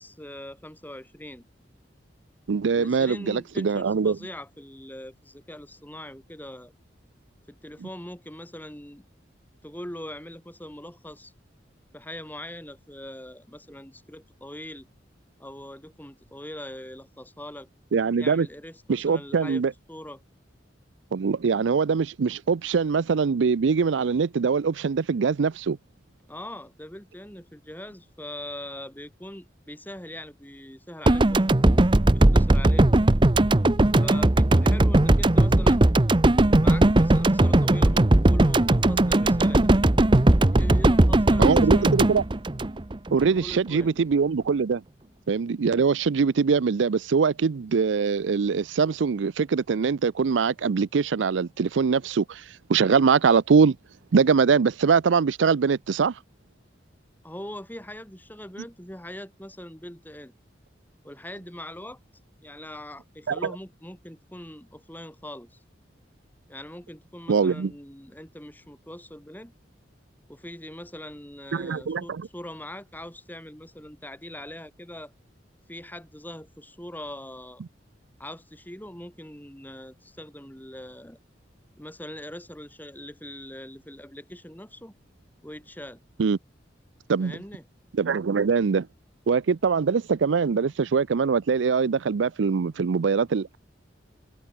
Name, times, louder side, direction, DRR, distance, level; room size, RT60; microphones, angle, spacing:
voice 1, 0.0-1.4 2.7-6.7 7.5-9.0 9.6-11.3 11.9-14.9 15.4-17.7 18.2-19.6 19.9-20.2 26.3-31.5 32.1-32.9 34.0-35.9 36.6-39.7 40.5-41.9 43.3-44.0 57.2-60.3 61.0-62.0 62.4-65.6 66.5-69.5 70.3-75.1 75.7-77.6 78.2-81.2 81.8-84.9 85.4-86.0 87.2-87.6, left 1 dB, 10° left, 5.8 m, -41 dB
voice 2, 2.5-4.2 17.9-18.5 18.9-19.7 21.1-25.8 41.4-42.2 43.1-44.8 45.3-53.8 54.1-56.2 63.3-63.5 67.3-67.7 71.5-72.3 86.2-86.4 87.1-87.4 87.9-88.9 89.3-93.6, right 5 dB, 80° right, 0.5 m, -23 dB
sound 1, 31.1-43.3, right 1 dB, 25° right, 0.8 m, -19 dB
head